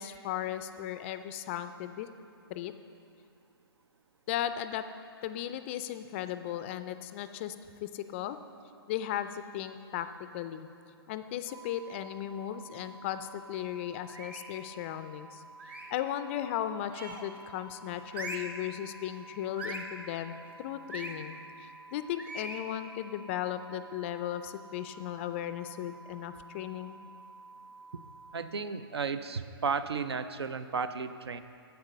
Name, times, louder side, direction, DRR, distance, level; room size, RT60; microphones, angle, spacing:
voice 1, 0.0-2.1 2.5-2.7 4.3-4.8 5.2-7.5 7.8-8.4 8.9-10.1 10.3-10.7 11.1-15.4 15.9-27.1, left 11 dB, 30° left, 11 dB, 0.3 m, -36 dB
sound 1, 11.5-28.3, right 3 dB, 55° right, 2.0 m, -52 dB
sound 2, 14.1-14.6 15.6-16.0 16.9-17.4 18.1-18.6 19.6-20.0 20.9-21.2 22.2-22.7, right 1 dB, 10° right, 0.6 m, -41 dB
voice 2, 28.3-31.4, right 5 dB, 85° right, 12 dB, 0.5 m, -33 dB
8.0 x 7.9 x 5.4 m, 2.5 s
hypercardioid pair, 135°, 13 cm